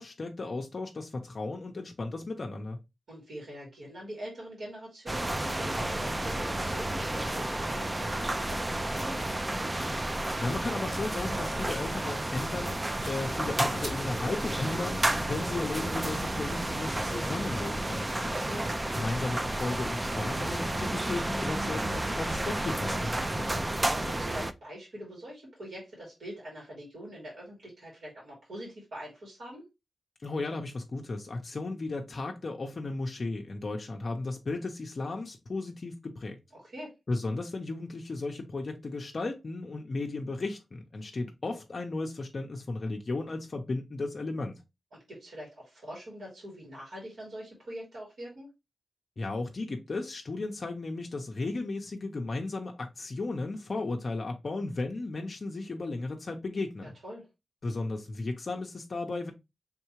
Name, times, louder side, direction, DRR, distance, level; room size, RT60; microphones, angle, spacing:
voice 1, 0.0-2.8 10.4-18.4 18.9-23.7 30.2-36.4 37.1-44.6 49.2-56.9 57.6-59.3, left 3 dB, 45° left, 0.6 m, -35 dB
voice 2, 3.1-5.3 5.6-9.2 18.2-18.7 24.0-29.6 36.5-36.9 44.9-48.5 56.8-57.3, equal, 75° right, 2.5 m, -44 dB
sound 1, 5.1-24.5, right 1 dB, 20° right, 0.3 m, -31 dB
sound 2, 10.9-17.8, equal, 60° right, 1.9 m, -49 dB
4.5 x 3.6 x 3.0 m
wide cardioid pair, 120°, 0 cm